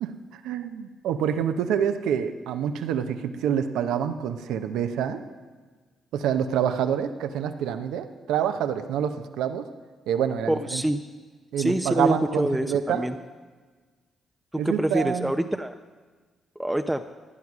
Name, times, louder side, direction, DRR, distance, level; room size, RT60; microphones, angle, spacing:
voice 1, 0.0-5.2 6.1-9.7 10.1-10.8 11.5-13.1 14.6-15.3, right 8 dB, 80° right, 8 dB, 0.8 m, -27 dB
voice 2, 10.5-11.0 11.6-13.2 14.5-15.8 16.6-17.1, right 1 dB, 10° right, 7 dB, 0.7 m, -26 dB
15.5 x 9.4 x 6.2 m, 1.4 s
hypercardioid pair, 50°, 0 cm